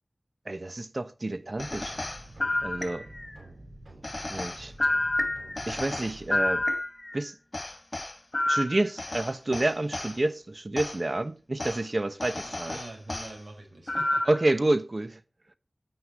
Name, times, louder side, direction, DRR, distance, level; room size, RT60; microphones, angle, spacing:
voice 1, 0.4-2.0 2.6-3.1 4.3-4.7 5.7-6.6 7.1-7.4 8.5-12.8 14.2-15.2, right 2 dB, 50° right, 1.3 m, -29 dB
sound 1, 1.5-6.6, right 1 dB, 85° right, 7.1 m, -48 dB
sound 2, 1.6-3.4 4.0-7.2 7.5-10.1 10.8-11.0 11.6-11.8 12.2-13.3 13.9-14.5, left 1 dB, 45° left, 2.3 m, -30 dB
voice 2, 12.4-14.3, right 2 dB, 70° right, 6.2 m, -45 dB
10.0 x 9.5 x 4.6 m
wide cardioid pair, 50°, 0 cm